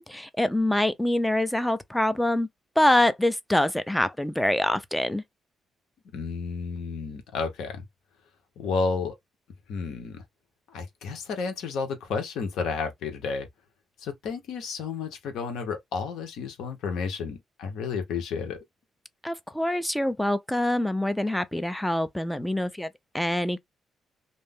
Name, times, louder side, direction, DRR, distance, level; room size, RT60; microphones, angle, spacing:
voice 1, 0.0-2.5 2.8-5.2 19.2-22.9 23.1-23.6, left 1 dB, 5° left, 0.4 m, -25 dB
voice 2, 6.1-7.8 8.6-9.2 9.7-10.2 10.7-13.5 14.0-18.6, left 5 dB, 80° left, 0.8 m, -31 dB
2.6 x 2.0 x 3.5 m
cardioid pair, 90°, 0 cm